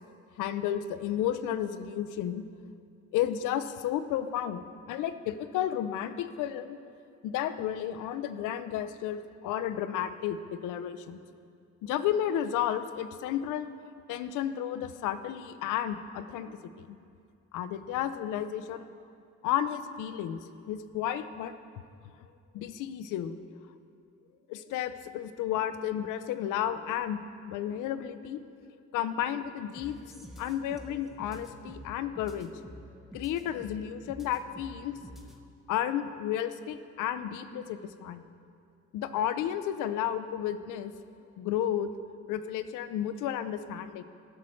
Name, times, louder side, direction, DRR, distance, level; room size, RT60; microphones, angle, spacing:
voice 1, 0.4-2.4 3.1-6.8 7.2-11.2 11.8-13.7 14.1-17.0 17.5-18.9 19.4-21.5 22.5-23.4 24.5-28.4 28.9-30.0 30.4-32.5 33.1-35.0 35.7-38.2 38.9-40.9 41.4-41.9 42.3-44.0, left 10 dB, 90° left, 11 dB, 0.5 m, -32 dB
sound 1, 29.7-35.5, equal, ahead, 0.8 m, -48 dB
12.0 x 6.2 x 4.4 m, 2.4 s
cardioid pair, 90°, 30 cm